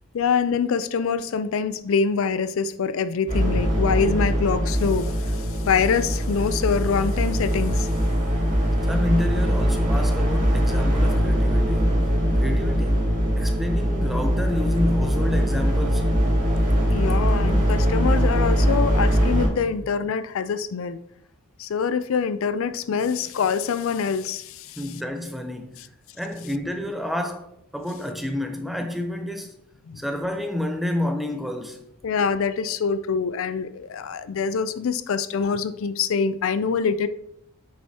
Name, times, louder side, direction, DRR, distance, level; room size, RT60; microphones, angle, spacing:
voice 1, 0.1-7.9 16.8-21.0 21.6-24.8 29.9-30.0 32.0-37.1, left 6 dB, 70° left, 0.4 m, -25 dB
sound 1, 3.3-19.5, equal, 35° right, 2.4 m, -21 dB
voice 2, 8.9-12.0 12.4-13.1 13.4-16.1 24.8-27.5 27.7-29.6 30.0-31.8, left 1 dB, ahead, 0.6 m, -29 dB
7.8 x 6.4 x 2.8 m
head